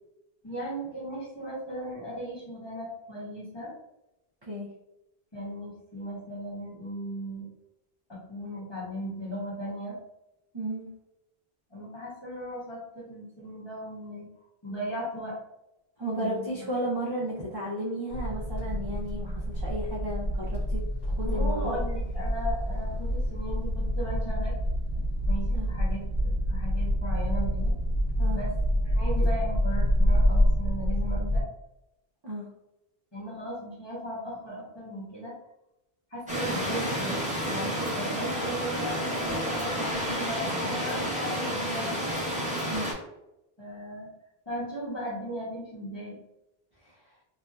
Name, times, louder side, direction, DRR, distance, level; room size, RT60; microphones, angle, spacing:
voice 1, 0.4-3.7 5.3-7.5 8.1-9.9 11.7-14.3 14.6-15.3 16.1-16.7 21.2-24.5 25.3-27.7 28.2-28.5 28.8-31.4 33.1-35.3 36.1-37.2 37.5-42.0 43.6-44.1 44.4-46.2, equal, 25° left, -7 dB, 1.2 m, -37 dB
voice 2, 10.5-10.9 16.0-21.8 25.5-25.7 28.2-28.4 32.2-32.5 42.7-42.9 46.8-46.9, right 1 dB, 30° right, -7 dB, 0.5 m, -33 dB
sound 1, 18.1-31.4, equal, 85° left, 1.4 m, -27 dB
sound 2, 36.3-42.9, equal, 10° right, 0.9 m, -30 dB
3.1 x 2.7 x 2.3 m, 0.90 s
omnidirectional pair, 1.0 m